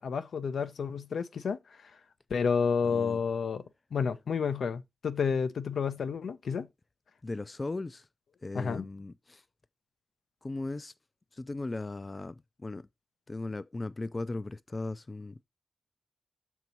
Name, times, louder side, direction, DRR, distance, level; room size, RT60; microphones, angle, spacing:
voice 1, 0.0-1.9 2.3-3.6 3.9-6.7 8.5-8.8, left 6 dB, 80° left, 0.6 m, -30 dB
voice 2, 2.8-3.2 7.2-8.1 8.4-9.4 10.4-10.9 11.3-12.9 13.3-15.4, left 2 dB, 30° left, 0.3 m, -37 dB
6.8 x 4.6 x 4.0 m
wide cardioid pair, 110°, 0 cm